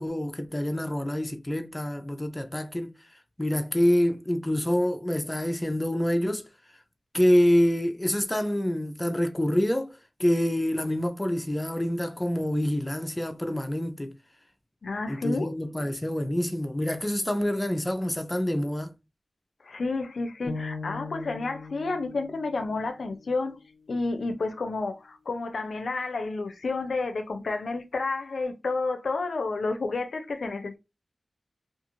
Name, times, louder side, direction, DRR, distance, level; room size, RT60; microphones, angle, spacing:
voice 1, 0.0-2.9 3.4-6.4 7.1-14.1 15.1-18.9, equal, 20° left, 0.4 m, -26 dB
voice 2, 14.8-15.5 19.6-23.6 23.9-30.8, left 3 dB, 80° left, 0.4 m, -30 dB
sound 1, 20.5-24.6, left 3 dB, 35° left, 1.1 m, -41 dB
2.4 x 2.4 x 2.9 m
wide cardioid pair, 65°, 0 cm